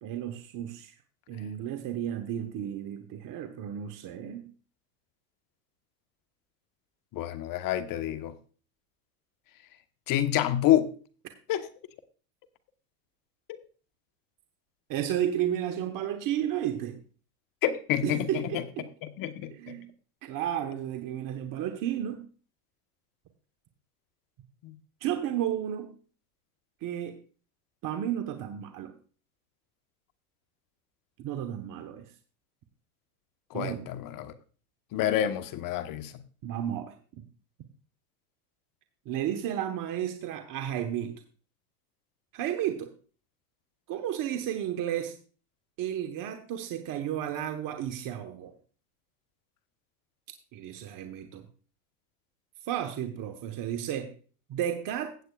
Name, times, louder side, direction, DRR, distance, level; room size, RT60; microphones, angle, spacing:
voice 1, 0.0-0.9 1.3-4.5 14.9-17.0 18.0-18.9 19.5-19.9 20.2-22.2 25.0-25.9 26.8-27.2 27.8-28.9 31.2-32.1 33.5-33.9 36.4-37.2 39.0-41.2 42.3-42.9 43.9-45.2 45.8-48.5 50.5-51.5 52.6-54.1 54.5-55.2, right 10 dB, 45° right, 7 dB, 1.2 m, -32 dB
voice 2, 7.1-8.3 10.1-10.9 11.5-11.7 17.6-18.3 18.5-18.6 19.2-19.8 24.6-24.7 33.5-34.3 34.9-36.1, left 12 dB, 45° left, 11 dB, 1.2 m, -28 dB
16.0 x 8.1 x 2.4 m, 0.38 s
supercardioid pair, 105°, 44 cm